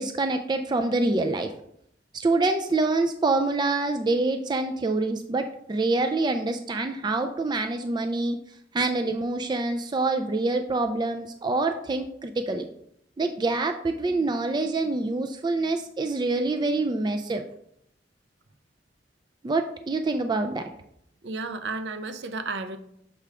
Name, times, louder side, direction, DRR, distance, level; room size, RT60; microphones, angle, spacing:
voice 1, 0.0-1.5 2.1-8.4 8.7-12.7 13.2-17.4 19.4-20.7, right 3 dB, 25° right, 6 dB, 0.4 m, -26 dB
voice 2, 21.2-22.8, right 3 dB, 75° right, 9 dB, 0.6 m, -32 dB
6.8 x 3.4 x 4.8 m, 0.71 s
head